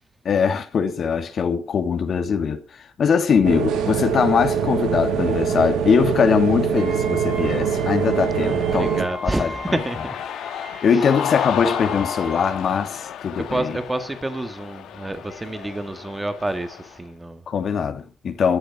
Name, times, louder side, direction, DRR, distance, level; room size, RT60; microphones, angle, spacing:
voice 1, 0.2-2.6 3.0-9.8 10.8-13.8 17.5-18.6, left 6 dB, 55° left, 2.7 m, -21 dB
sound 1, 3.4-9.0, right 7 dB, 85° right, 2.9 m, -23 dB
Wind instrument woodwind instrument, 6.8-12.7, equal, 60° right, 7.5 m, -38 dB
Cheering, 7.7-17.0, left 9 dB, 80° left, 2.8 m, -33 dB
voice 2, 8.4-10.1 13.5-17.4, right 2 dB, 15° right, 1.9 m, -28 dB
14.5 x 10.0 x 5.8 m
cardioid pair, 90°, 0 cm